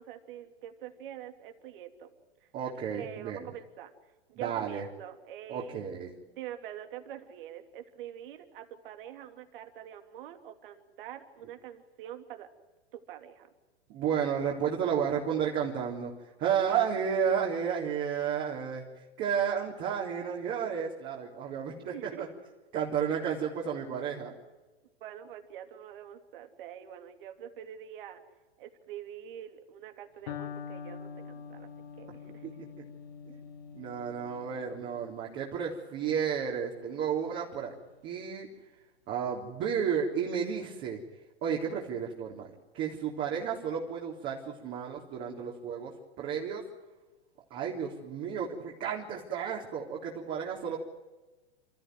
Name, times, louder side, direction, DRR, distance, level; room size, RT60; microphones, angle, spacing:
voice 1, 0.0-2.1 2.4-5.8 6.4-12.5 12.9-13.5 21.9-22.3 25.0-28.2 28.6-31.7 32.0-32.5, right 10 dB, 55° right, 6 dB, 3.1 m, -45 dB
voice 2, 2.5-3.5 4.4-4.8 5.5-6.1 13.9-16.1 16.4-18.8 19.2-22.3 22.7-24.3 32.4-32.7 33.3-33.4 33.7-37.7 38.0-38.5 39.1-41.0 41.4-42.5 42.7-45.9 46.2-46.6 47.5-50.8, right 7 dB, 35° right, -3 dB, 3.7 m, -32 dB
Electric guitar, 30.3-38.1, left 7 dB, 60° left, 3.7 m, -46 dB
29.5 x 13.5 x 9.3 m, 1.2 s
hypercardioid pair, 110°, 32 cm